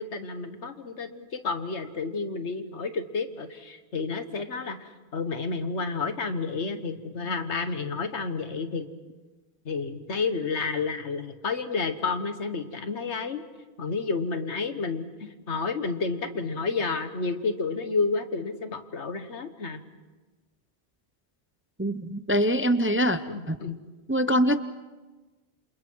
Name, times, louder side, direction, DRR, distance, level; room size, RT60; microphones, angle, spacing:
voice 1, 0.0-8.9 9.6-13.4 13.8-19.8 23.3-23.8, left 4 dB, 80° left, 8 dB, 1.7 m, -30 dB
voice 2, 21.8-23.2 23.5-23.6 24.1-24.6, equal, 15° right, 11 dB, 0.5 m, -23 dB
28.5 x 27.5 x 4.7 m, 1.2 s
omnidirectional pair, 1.2 m